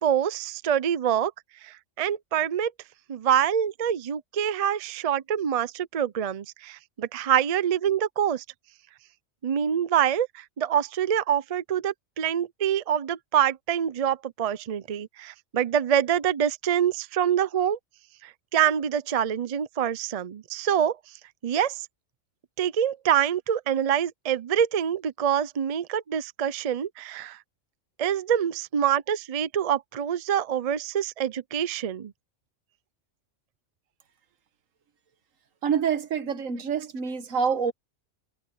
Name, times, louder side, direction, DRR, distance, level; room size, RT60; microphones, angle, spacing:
voice 1, 0.0-1.3 1.6-2.7 3.1-8.4 9.4-17.8 18.2-21.0 21.4-21.9 22.6-27.4 28.0-32.1, right 9 dB, 45° right, 0.5 m, -25 dB
voice 2, 35.6-37.7, right 6 dB, 80° right, 1.6 m, -26 dB
omnidirectional pair, 1.3 m